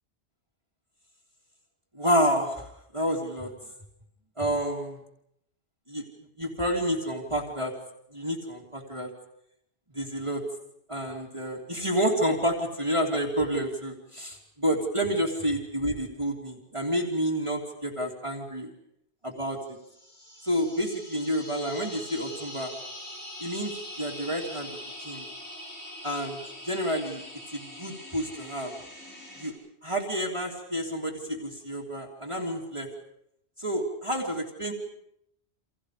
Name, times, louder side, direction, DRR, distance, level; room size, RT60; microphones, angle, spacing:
voice 1, 1.9-3.5 4.4-5.0 5.9-6.0 6.4-7.7 8.1-9.1 9.9-10.4 10.9-18.7 19.2-19.6 20.4-22.7 23.4-25.3 26.0-27.2 27.5-28.7 29.4-29.5 29.8-32.9 33.6-34.7, equal, 25° right, -2 dB, 3.2 m, -29 dB
sound 1, 19.8-29.5, left 1 dB, 75° left, 6.1 m, -43 dB
29.5 x 27.0 x 5.1 m, 0.75 s
omnidirectional pair, 1.1 m